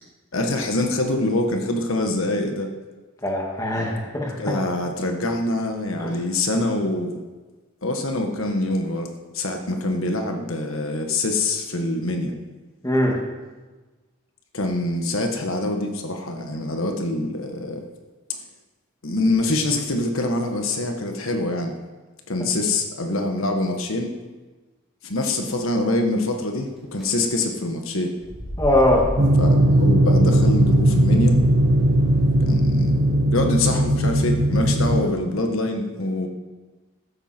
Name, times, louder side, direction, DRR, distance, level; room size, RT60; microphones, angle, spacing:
voice 1, 0.3-2.7 4.4-7.2 7.8-9.1 9.3-12.3 14.5-17.8 19.0-21.8 22.3-24.1 25.0-28.2 29.4-31.4 32.4-32.9 33.3-36.3, left 2 dB, 75° left, 4 dB, 1.4 m, -25 dB
voice 2, 3.2-4.3 6.0-6.1 12.8-13.2 28.6-29.1, left 1 dB, 15° left, -1 dB, 2.1 m, -21 dB
sound 1, 26.7-27.0 28.1-32.5, equal, ahead, 4.1 m, -35 dB
sound 2, 29.2-35.0, right 1 dB, 60° right, 1.2 m, -18 dB
15.5 x 13.0 x 4.5 m, 1.3 s
head